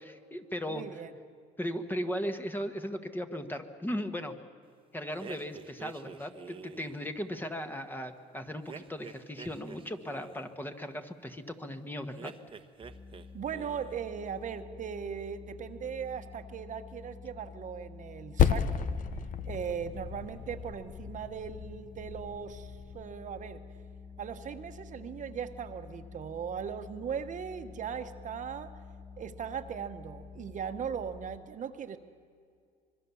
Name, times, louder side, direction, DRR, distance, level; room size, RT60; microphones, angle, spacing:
voice 1, 0.0-0.8 1.6-4.3 4.9-12.3, equal, 10° left, 7 dB, 1.4 m, -37 dB
voice 2, 0.7-1.1 13.3-18.9 19.5-23.6 24.2-28.7 29.2-32.0, right 7 dB, 50° right, 7 dB, 1.2 m, -38 dB
sound 1, 5.2-7.0 8.7-10.5 12.1-13.3 13.5-14.0, right 5 dB, 30° right, 1.1 m, -47 dB
sound 2, 12.8-31.4, left 5 dB, 25° left, 3.5 m, -49 dB
Percussion, 18.4-23.2, left 8 dB, 50° left, 1.0 m, -32 dB
25.5 x 22.0 x 7.1 m, 2.3 s
cardioid pair, 110°, 17 cm